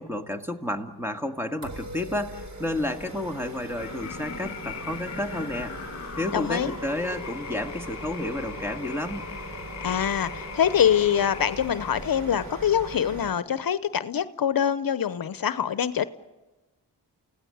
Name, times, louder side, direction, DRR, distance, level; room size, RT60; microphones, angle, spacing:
voice 1, 0.0-5.8 6.2-9.2, left 1 dB, 5° right, 6 dB, 1.9 m, -31 dB
sound 1, 1.6-13.3, right 1 dB, 45° right, 3.2 m, -40 dB
sound 2, 3.7-12.1, left 7 dB, 40° left, 1.7 m, -39 dB
voice 2, 6.3-6.7 9.8-16.1, left 9 dB, 60° left, 13 dB, 0.9 m, -24 dB
29.0 x 17.0 x 8.0 m, 1.1 s
cardioid pair, 60°, 40 cm